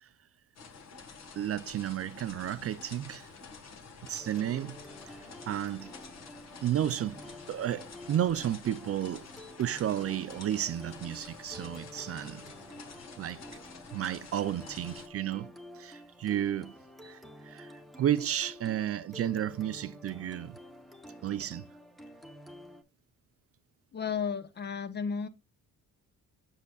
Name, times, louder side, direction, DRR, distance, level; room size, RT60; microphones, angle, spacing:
sound 1, 0.6-15.1, left 5 dB, 50° left, 1.5 m, -49 dB
voice 1, 1.4-3.3 4.0-4.8 5.0-5.2 5.5-5.9 6.6-7.2 7.5-9.3 9.6-12.5 13.2-13.4 13.9-16.7 17.0-20.6 21.2-21.7, right 11 dB, 45° right, 0.4 m, -32 dB
sound 2, 4.2-22.8, left 1 dB, ahead, 0.8 m, -50 dB
voice 2, 23.9-25.3, left 6 dB, 30° left, 0.8 m, -33 dB
8.3 x 6.6 x 2.3 m
cardioid pair, 155°, 33 cm